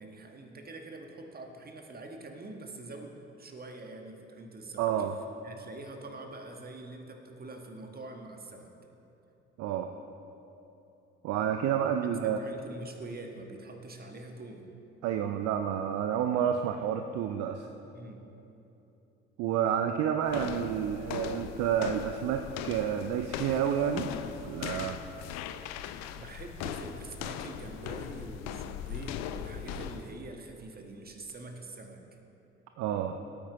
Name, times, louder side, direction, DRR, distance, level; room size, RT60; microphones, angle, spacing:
voice 1, 0.0-5.1 5.4-8.7 12.2-14.6 17.9-18.3 26.1-32.0, right 2 dB, 30° right, 3 dB, 1.4 m, -45 dB
voice 2, 4.8-5.1 9.6-9.9 11.2-12.4 15.0-17.7 19.4-24.1 24.4-25.0 32.8-33.2, right 9 dB, 50° right, 7 dB, 0.6 m, -29 dB
sound 1, 20.3-30.2, left 10 dB, 55° left, 0.6 m, -39 dB
18.0 x 8.8 x 3.0 m, 3.0 s
figure-of-eight pair, 50°, 32 cm